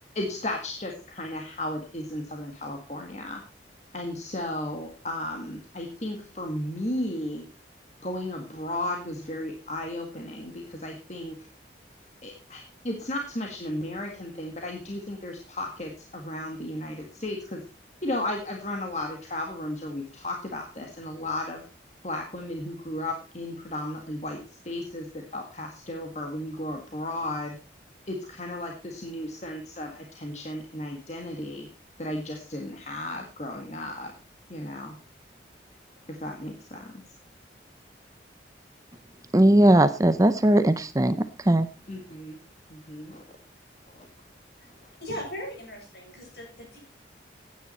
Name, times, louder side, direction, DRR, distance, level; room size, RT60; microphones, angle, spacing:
voice 1, 0.1-3.4 3.9-7.4 8.0-11.4 12.2-17.6 18.0-21.6 22.0-27.6 28.1-31.7 32.0-34.1 34.5-35.0 36.1-36.9 41.9-42.4 42.7-43.2 43.9-44.1, left 1 dB, 40° left, 2 dB, 1.8 m, -34 dB
voice 2, 39.3-41.7, right 1 dB, 20° right, 12 dB, 0.5 m, -19 dB
voice 3, 44.6-46.8, equal, 60° left, 1 dB, 7.2 m, -39 dB
16.0 x 9.5 x 4.2 m, 0.33 s
head